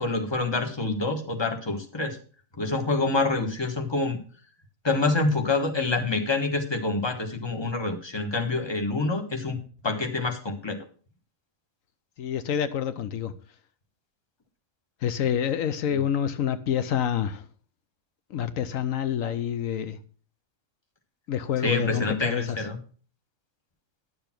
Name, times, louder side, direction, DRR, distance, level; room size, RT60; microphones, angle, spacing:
voice 1, 0.0-2.2 2.6-4.2 4.8-9.6 9.8-10.8 15.9-16.0 21.6-22.8, left 3 dB, 20° left, 1.5 m, -27 dB
voice 2, 12.2-13.3 15.0-17.4 18.3-20.0 21.3-22.6, left 9 dB, 80° left, 1.1 m, -27 dB
11.0 x 6.9 x 5.9 m
omnidirectional pair, 1.4 m